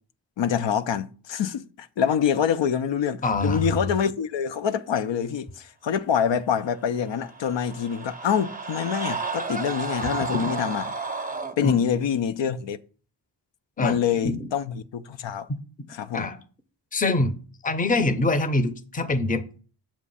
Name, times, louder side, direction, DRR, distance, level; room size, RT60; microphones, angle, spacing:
voice 1, 0.4-10.9 11.6-12.8 13.8-15.5 15.9-16.3, left 8 dB, 75° left, 0.5 m, -26 dB
voice 2, 3.2-3.7 10.4-10.5 11.6-11.8 13.8-14.5 16.1-16.4 16.9-17.3 17.6-19.6, left 2 dB, 20° left, 0.6 m, -24 dB
sound 1, 7.1-11.5, right 4 dB, 20° right, 0.6 m, -32 dB
7.3 x 2.4 x 5.4 m
cardioid pair, 50°, 44 cm